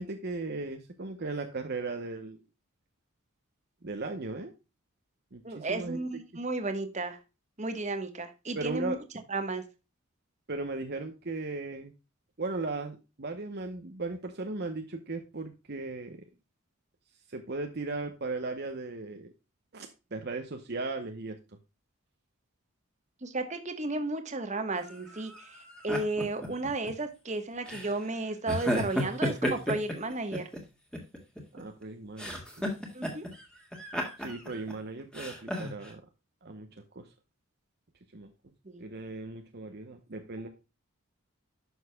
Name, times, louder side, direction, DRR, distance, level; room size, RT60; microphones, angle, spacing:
voice 1, 0.0-2.4 3.8-4.5 5.3-6.2 8.6-9.0 10.5-11.9 12.4-16.2 17.3-19.3 19.7-21.4 31.5-32.4 34.2-36.0 36.4-36.7 36.9-37.1 38.1-38.3 38.8-40.5, right 3 dB, 50° right, 5 dB, 0.8 m, -37 dB
voice 2, 5.4-7.2 7.6-8.9 9.3-9.6 23.2-25.3 25.8-30.5 32.9-33.3 38.7-38.8, right 2 dB, 30° right, 8 dB, 1.1 m, -33 dB
sound 1, 24.8-26.9 27.7-28.0 28.5-30.6 30.9-31.8 32.2-33.4 33.7-34.7 35.1-35.9, equal, 5° left, 1.8 m, -33 dB
11.0 x 6.4 x 2.2 m, 0.28 s
head